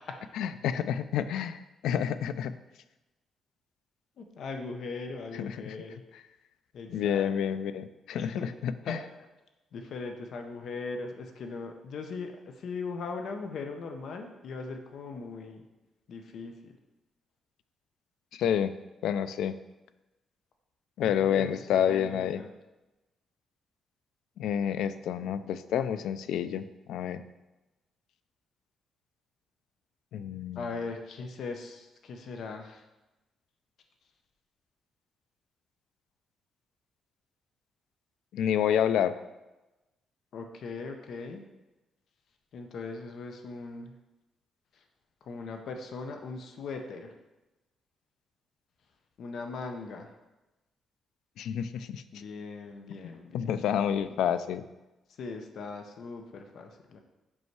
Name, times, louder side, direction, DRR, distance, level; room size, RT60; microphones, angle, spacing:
voice 1, 0.3-2.5 5.3-5.8 6.9-9.0 18.3-18.7 19.0-19.6 21.0-22.4 24.4-27.2 30.1-30.7 38.3-39.2 51.4-52.0 53.0-54.6, left 9 dB, 90° left, 13 dB, 0.3 m, -29 dB
voice 2, 4.2-6.0 6.7-7.3 8.1-8.5 8.8-9.0 9.7-15.6 16.1-16.7 21.0-22.5 30.5-32.8 40.3-41.4 42.5-43.9 44.7-44.8 45.2-47.1 49.2-50.1 52.1-53.4 55.2-57.0, left 4 dB, 55° left, 5 dB, 0.6 m, -39 dB
5.5 x 5.3 x 4.6 m, 1.0 s
cardioid pair, 170°, 0 cm